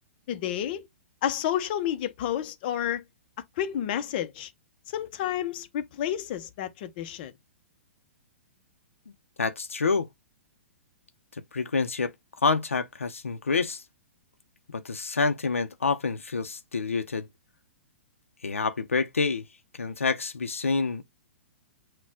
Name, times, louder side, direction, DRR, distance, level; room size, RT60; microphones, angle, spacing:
voice 1, 0.3-0.9 1.2-3.0 3.6-4.5 4.9-7.3, left 10 dB, 45° left, 0.7 m, -30 dB
voice 2, 9.4-10.1 11.3-12.1 12.4-13.8 14.7-17.3 18.4-19.4 19.7-21.0, left 4 dB, 85° left, 0.7 m, -27 dB
6.2 x 2.3 x 3.6 m
figure-of-eight pair, 115°, 7 cm